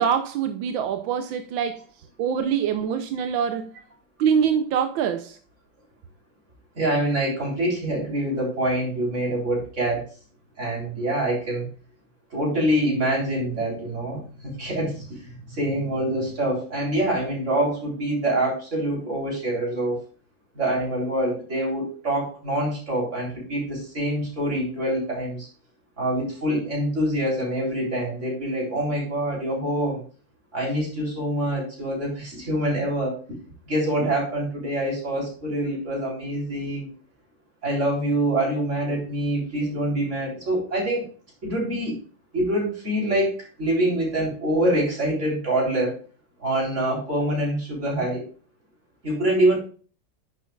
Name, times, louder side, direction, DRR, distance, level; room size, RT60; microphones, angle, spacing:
voice 1, 0.0-1.8 2.2-3.7 4.2-5.4, right 7 dB, 85° right, 1.5 m, -24 dB
voice 2, 6.8-10.1 10.6-11.7 12.3-20.0 20.5-25.5 26.0-30.0 30.5-33.2 33.7-36.9 37.6-41.1 41.4-42.0 42.3-46.0 46.4-48.2 49.0-49.6, right 1 dB, 35° right, 4.1 m, -25 dB
10.5 x 6.9 x 2.4 m
omnidirectional pair, 2.1 m